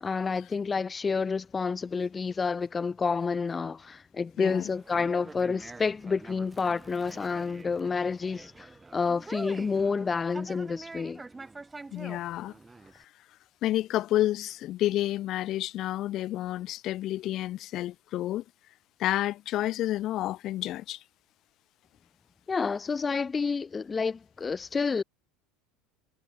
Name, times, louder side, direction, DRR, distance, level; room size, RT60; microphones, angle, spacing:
voice 1, 0.0-11.2 22.5-25.0, left 5 dB, 25° left, 0.3 m, -29 dB
voice 2, 4.4-4.7 11.9-12.5 12.9-13.1 13.6-18.4 19.0-21.0, left 14 dB, 50° left, 1.6 m, -30 dB
Conversation, 4.7-13.0, right 3 dB, 15° right, 1.5 m, -46 dB
figure-of-eight pair, 70°, 0 cm